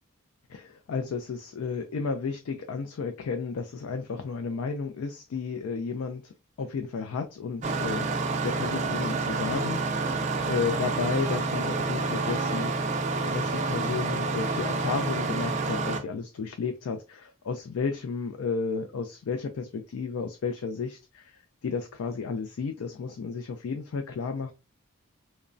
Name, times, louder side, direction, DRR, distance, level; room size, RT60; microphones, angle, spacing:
voice 1, 0.5-6.3 6.6-24.5, left 5 dB, 75° left, 0.3 m, -33 dB
Engine starting, 7.6-16.0, right 3 dB, 30° right, 0.3 m, -28 dB
3.0 x 2.1 x 2.5 m
head